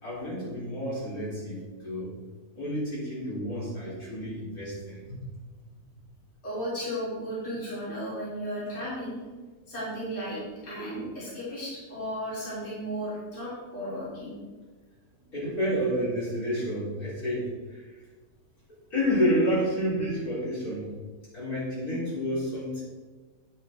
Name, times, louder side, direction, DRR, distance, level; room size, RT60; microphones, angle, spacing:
voice 1, 0.0-2.1 2.5-5.2 15.3-17.9 18.9-20.9 21.3-22.8, equal, 60° left, -8 dB, 4.2 m, -29 dB
voice 2, 6.4-9.1 9.7-14.3, equal, 40° left, -9 dB, 3.4 m, -34 dB
9.3 x 8.0 x 4.3 m, 1.3 s
omnidirectional pair, 1.8 m